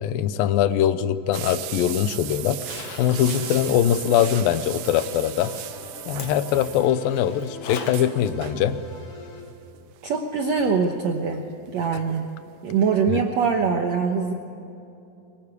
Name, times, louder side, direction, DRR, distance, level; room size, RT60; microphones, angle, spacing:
voice 1, 0.0-2.6 3.0-5.5 6.1-8.8 13.1-13.2, left 10 dB, 80° left, 12 dB, 2.6 m, -22 dB
sound 1, 1.3-7.2 7.5-7.6 7.8-8.7 9.7-10.0 10.6-11.9 12.1-12.2 12.7-12.8, right 14 dB, 85° right, 1.6 m, -37 dB
Zipper (clothing), 2.5-8.1 8.5-8.6 10.5-10.6 11.0-11.1, left 5 dB, 60° left, 2.8 m, -42 dB
sound 2, 2.8-9.4, equal, 40° left, 4.4 m, -43 dB
voice 2, 10.0-11.4 11.7-12.3 12.6-14.3, right 5 dB, 65° right, 4 dB, 2.0 m, -23 dB
23.5 x 20.5 x 8.3 m, 2.8 s
omnidirectional pair, 4.1 m